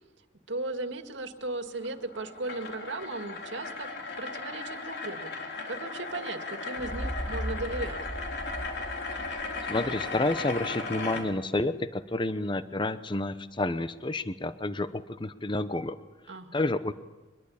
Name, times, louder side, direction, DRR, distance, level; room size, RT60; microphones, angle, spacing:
voice 1, 0.5-3.9 4.2-5.3 5.7-8.0 16.3-16.6, right 2 dB, 90° right, 7 dB, 2.1 m, -36 dB
sound 1, 1.7-11.2, left 3 dB, 60° left, 4.1 m, -37 dB
sound 2, 6.8-10.6, equal, 30° right, 1.8 m, -38 dB
voice 2, 9.7-16.0 16.5-16.9, left 2 dB, 25° left, 12 dB, 0.9 m, -30 dB
24.0 x 21.5 x 8.6 m, 1.1 s
head